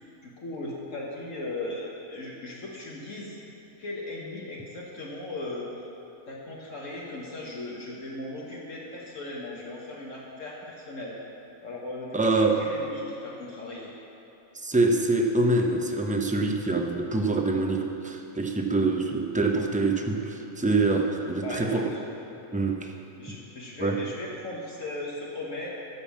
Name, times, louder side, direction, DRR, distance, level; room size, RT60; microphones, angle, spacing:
voice 1, 0.2-3.4 3.8-5.7 6.3-11.2 11.6-13.9 21.3-22.0 23.2-25.7, left 2 dB, 65° left, -4 dB, 1.6 m, -37 dB
voice 2, 12.1-12.6 14.6-21.8 22.5-22.9 23.8-24.0, right 2 dB, 10° right, 2 dB, 0.5 m, -25 dB
13.5 x 5.4 x 7.3 m, 2.9 s
omnidirectional pair, 1.4 m